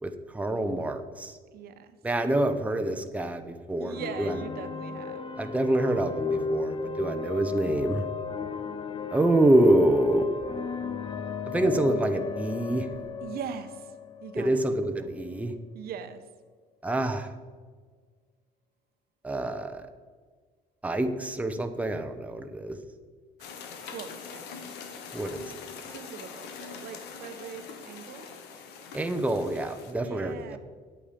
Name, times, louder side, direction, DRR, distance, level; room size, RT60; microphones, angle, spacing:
voice 1, 0.0-1.4 2.0-4.3 5.4-8.0 9.1-10.3 11.5-12.9 14.4-15.5 16.8-17.3 19.2-19.9 20.8-22.8 25.1-25.5 28.9-30.6, right 1 dB, 10° right, 6 dB, 0.8 m, -26 dB
voice 2, 1.5-2.0 3.8-5.3 13.2-13.9 14.2-14.6 15.7-16.3 23.8-24.8 25.9-28.3 30.0-30.6, right 8 dB, 65° right, 10 dB, 0.9 m, -41 dB
sound 1, 3.9-15.6, left 5 dB, 30° left, 0.6 m, -35 dB
sound 2, 23.4-29.9, left 6 dB, 85° left, 1.3 m, -43 dB
9.9 x 8.5 x 5.1 m, 1.5 s
cardioid pair, 110°, 17 cm